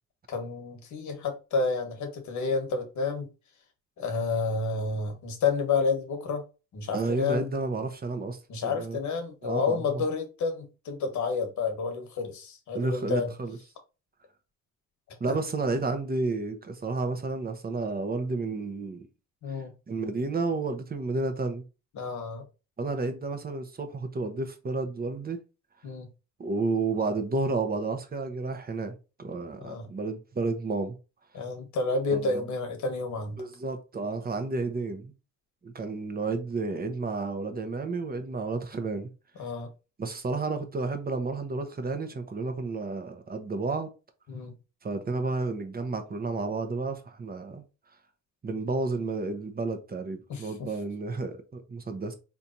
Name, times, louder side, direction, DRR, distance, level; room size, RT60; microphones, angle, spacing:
voice 1, 0.3-3.3 4.0-6.4 6.7-7.5 8.5-13.3 15.3-15.4 19.4-19.7 21.9-22.4 25.8-26.1 29.6-29.9 31.3-33.4 39.4-39.7 44.3-44.5 50.3-50.7, left 4 dB, 70° left, 1.4 m, -30 dB
voice 2, 6.9-9.0 9.4-10.0 12.7-13.6 15.2-19.1 19.9-21.6 22.8-25.4 26.4-30.9 32.1-32.4 33.4-35.1 35.6-39.1 40.0-43.9 44.8-47.6 48.4-52.1, right 3 dB, 30° right, 1.0 m, -31 dB
4.4 x 3.4 x 2.7 m
cardioid pair, 90°, 30 cm